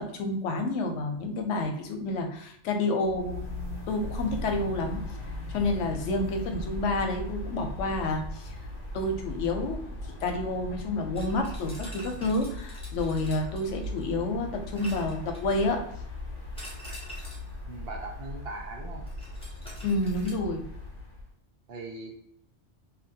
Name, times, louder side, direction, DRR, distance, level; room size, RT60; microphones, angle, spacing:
voice 1, 0.0-3.4 3.9-5.0 5.5-8.6 8.9-9.8 10.2-15.8 19.8-20.6, left 2 dB, 85° left, 4 dB, 0.9 m, -29 dB
sound 1, 3.0-21.3, left 1 dB, 55° left, 0.9 m, -39 dB
sound 2, 11.1-14.1 14.7-15.7 16.6-17.5 19.1-20.3, equal, 5° left, 0.6 m, -47 dB
voice 2, 17.7-19.0 21.7-22.1, right 3 dB, 65° right, 1 dB, 0.8 m, -39 dB
2.7 x 2.5 x 2.6 m, 0.68 s
omnidirectional pair, 1.2 m